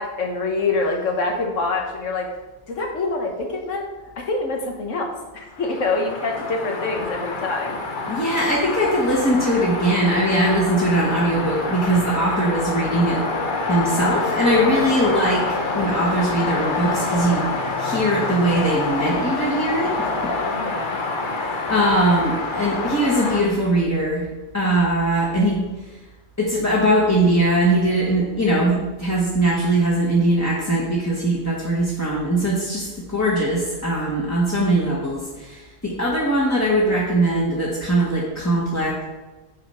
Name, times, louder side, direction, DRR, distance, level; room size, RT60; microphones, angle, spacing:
voice 1, 0.0-2.3 2.7-3.9 4.2-7.8 14.6-14.9 20.4-21.0, left 3 dB, 85° left, 2 dB, 1.6 m, -26 dB
sound 1, 5.5-23.4, left 3 dB, 45° left, 1.0 m, -26 dB
voice 2, 8.1-13.2 13.7-15.4 15.7-17.4 17.8-20.3 21.5-24.3 24.5-25.6 26.4-39.0, right 1 dB, 15° left, -6 dB, 1.2 m, -21 dB
8.1 x 4.2 x 5.6 m, 1.2 s
omnidirectional pair, 1.3 m